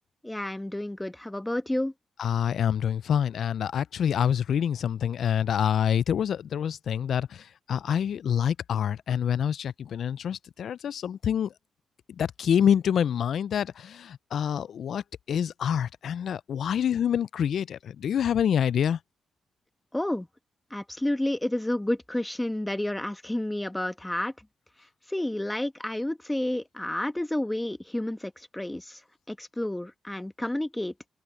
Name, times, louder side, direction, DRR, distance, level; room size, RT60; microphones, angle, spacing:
voice 1, 0.2-1.9 19.9-20.3 20.7-24.3 25.1-29.0 29.3-30.9, left 1 dB, 10° left, 1.4 m, -30 dB
voice 2, 2.2-11.5 12.2-15.0 15.3-19.0, left 8 dB, 70° left, 0.5 m, -26 dB
supercardioid pair, 45°, 0 cm